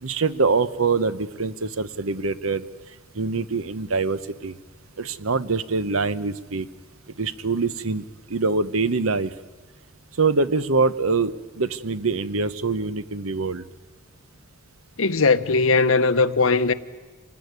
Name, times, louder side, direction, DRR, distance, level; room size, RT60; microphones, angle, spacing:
voice 1, 0.0-2.7 3.1-4.6 5.0-6.7 7.2-9.3 10.2-13.6, right 4 dB, 90° right, 0.9 m, -24 dB
voice 2, 15.0-16.7, left 4 dB, 80° left, 1.0 m, -19 dB
26.5 x 19.0 x 9.6 m
head